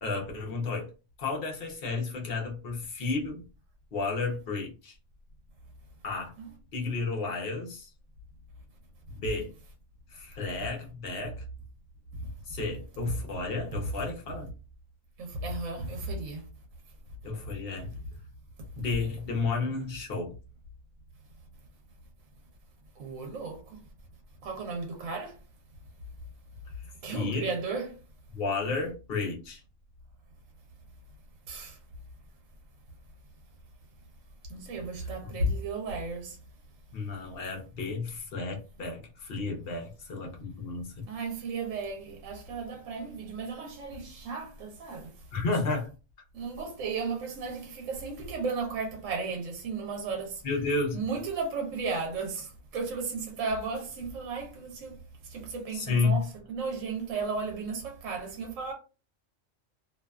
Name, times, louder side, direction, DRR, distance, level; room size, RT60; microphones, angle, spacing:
voice 1, 0.0-0.9 1.2-3.4 3.9-5.0 6.0-6.3 6.7-7.9 9.1-9.5 10.1-11.4 12.5-14.5 17.2-17.9 18.8-20.4 27.1-27.5 28.3-29.6 36.9-41.1 45.3-45.9 50.4-51.0 55.7-56.2, left 3 dB, 55° left, 0.9 m, -32 dB
voice 2, 15.2-16.5 23.0-23.8 24.4-25.4 27.0-28.0 31.5-31.8 34.5-36.4 41.1-45.1 46.3-50.4 50.9-58.7, right 3 dB, 80° right, 1.0 m, -34 dB
2.6 x 2.2 x 2.2 m
omnidirectional pair, 1.3 m